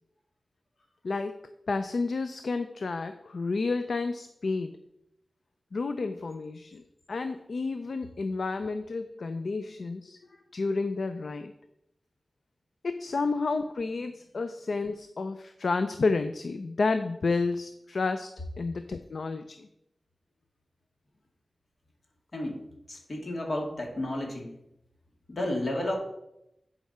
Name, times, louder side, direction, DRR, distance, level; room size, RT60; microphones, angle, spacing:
voice 1, 1.0-4.8 5.7-6.8 7.1-10.2 10.5-11.5 12.8-19.7, left 3 dB, 75° left, 9 dB, 0.4 m, -31 dB
voice 2, 22.9-24.5 25.3-25.9, left 1 dB, 60° left, 0 dB, 2.3 m, -32 dB
10.5 x 4.9 x 4.2 m, 0.83 s
wide cardioid pair, 65°, 0 cm